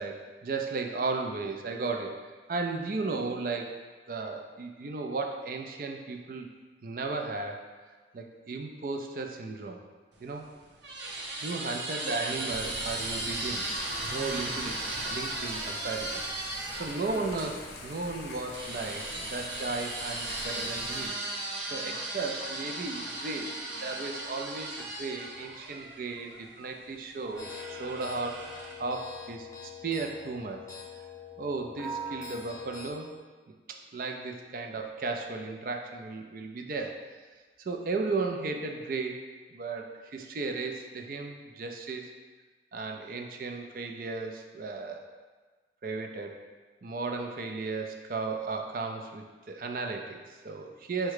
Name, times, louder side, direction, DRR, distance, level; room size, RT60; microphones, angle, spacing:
voice 1, 0.0-3.8 4.1-6.5 6.8-7.7 8.1-9.8 10.2-10.5 11.4-13.6 14.0-14.8 15.1-16.2 16.7-21.2 21.7-30.7 31.4-33.1 33.7-37.0 37.6-39.2 39.5-42.1 42.7-45.1 45.8-46.4 46.8-51.1, right 3 dB, 50° right, 3 dB, 0.4 m, -35 dB
sound 1, 10.2-17.6 18.5-26.4 27.3-28.9, right 2 dB, 90° right, 0.7 m, -36 dB
Thunder / Rain, 12.5-21.1, left 2 dB, 65° left, 0.6 m, -44 dB
sound 2, 27.4-32.9, left 2 dB, 15° left, 0.5 m, -43 dB
4.7 x 2.2 x 4.7 m, 1.4 s
head